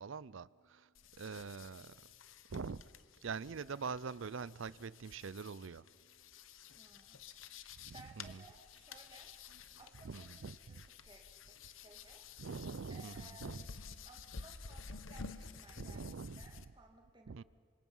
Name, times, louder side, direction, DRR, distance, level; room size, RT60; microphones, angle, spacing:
voice 1, 0.0-2.0 2.5-2.8 3.2-6.2 7.8-8.4 9.5-9.6 10.0-10.9 12.4-13.7 15.7-16.6 17.3-17.4, right 5 dB, 75° right, 0.5 m, -44 dB
sound 1, 0.9-16.7, left 5 dB, 80° left, 1.0 m, -52 dB
voice 2, 6.7-7.2 7.9-9.3 9.8-10.3 10.7-11.6 11.8-12.3 12.9-13.5 14.1-17.4, right 3 dB, 25° right, 2.4 m, -60 dB
28.0 x 26.0 x 5.6 m
head